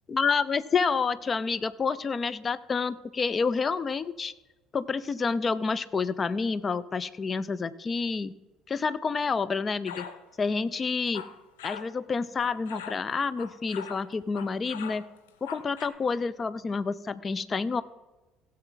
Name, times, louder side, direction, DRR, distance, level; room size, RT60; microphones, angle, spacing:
voice 1, 0.1-4.3 4.7-8.3 8.7-10.1 10.4-11.2 11.6-15.0 15.4-17.8, left 5 dB, 30° left, 17 dB, 0.5 m, -28 dB
sound 1, 9.9-10.2 10.9-11.9 12.4-14.1 14.3-15.9, left 7 dB, 75° left, 0.7 m, -42 dB
16.0 x 7.6 x 4.0 m, 1.1 s
figure-of-eight pair, 55°, 0 cm